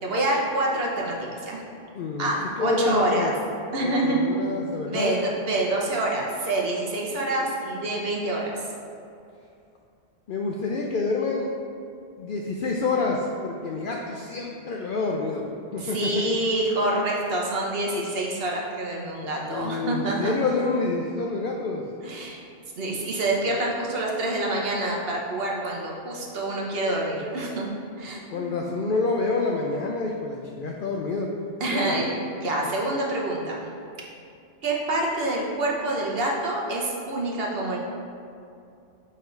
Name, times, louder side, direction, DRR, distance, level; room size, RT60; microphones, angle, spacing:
voice 1, 0.0-1.6 2.2-3.3 3.7-4.2 4.9-8.7 15.8-20.3 22.0-22.4 22.8-27.7 28.0-28.5 31.6-32.1 32.4-33.7 34.6-37.8, right 2 dB, 55° right, -2 dB, 1.2 m, -27 dB
voice 2, 1.9-2.3 2.6-3.3 3.8-5.2 10.3-11.5 12.2-16.1 19.5-21.8 28.3-31.3 31.7-32.0, left 3 dB, 60° left, -1 dB, 0.6 m, -27 dB
7.4 x 3.6 x 4.5 m, 2.5 s
omnidirectional pair, 1.2 m